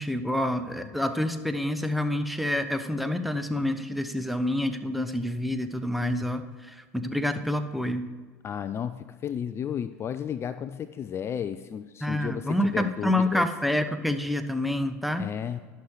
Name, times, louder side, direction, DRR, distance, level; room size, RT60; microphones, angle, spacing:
voice 1, 0.0-8.1 12.0-15.3, left 1 dB, ahead, 8 dB, 0.9 m, -28 dB
voice 2, 8.4-13.5 15.2-15.6, left 8 dB, 35° left, 11 dB, 0.4 m, -33 dB
11.5 x 6.4 x 4.7 m, 1.5 s
hypercardioid pair, 90°, 8 cm